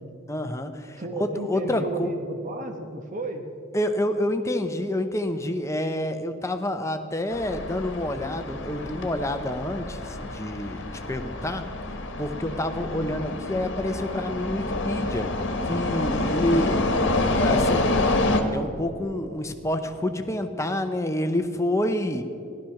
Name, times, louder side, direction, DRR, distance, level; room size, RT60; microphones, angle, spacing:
voice 1, 0.3-2.1 3.7-11.6 12.2-15.3 15.6-16.8 17.3-17.9 18.4-22.2, left 1 dB, 15° left, 7 dB, 0.7 m, -28 dB
voice 2, 1.0-3.5 12.9-13.2, right 2 dB, 40° right, 4 dB, 1.1 m, -33 dB
sound 1, 7.3-18.4, left 2 dB, 60° left, 1.3 m, -27 dB
15.0 x 11.5 x 5.8 m, 2.5 s
head